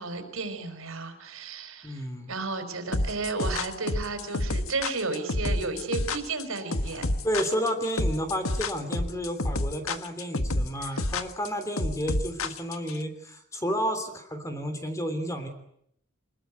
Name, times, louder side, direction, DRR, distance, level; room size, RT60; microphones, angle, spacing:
voice 1, 0.0-7.1 10.8-11.0, right 3 dB, 70° right, 8 dB, 4.8 m, -33 dB
voice 2, 1.8-2.3 6.9-15.5, equal, 15° left, 8 dB, 3.0 m, -31 dB
sound 1, 2.9-13.0, left 2 dB, 75° left, 1.6 m, -28 dB
25.0 x 21.0 x 9.4 m, 0.72 s
head